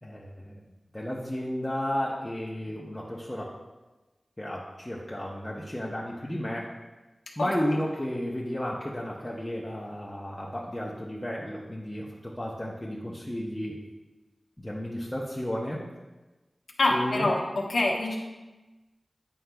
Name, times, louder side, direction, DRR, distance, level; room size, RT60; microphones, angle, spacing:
voice 1, 0.0-0.5 0.9-3.5 4.4-6.7 7.4-13.8 14.6-15.8 16.9-17.4, equal, 15° left, -5 dB, 0.7 m, -33 dB
voice 2, 16.8-18.2, left 2 dB, 85° left, -2 dB, 1.0 m, -25 dB
9.2 x 4.5 x 2.2 m, 1.1 s
wide cardioid pair, 75°, 0 cm